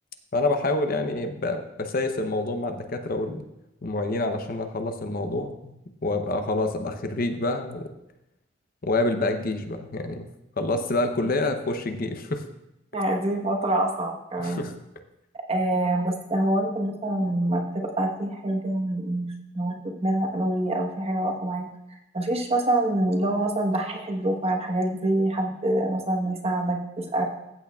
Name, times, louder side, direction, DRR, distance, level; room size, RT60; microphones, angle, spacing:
voice 1, 0.3-3.4 3.8-5.7 6.0-7.9 8.8-10.3 10.6-12.4 14.4-14.7, left 2 dB, 50° left, 7 dB, 0.8 m, -27 dB
voice 2, 12.9-14.6 15.5-19.3 19.5-21.7 22.1-27.3, right 1 dB, 35° right, 1 dB, 1.2 m, -26 dB
15.0 x 8.2 x 2.4 m, 0.88 s
head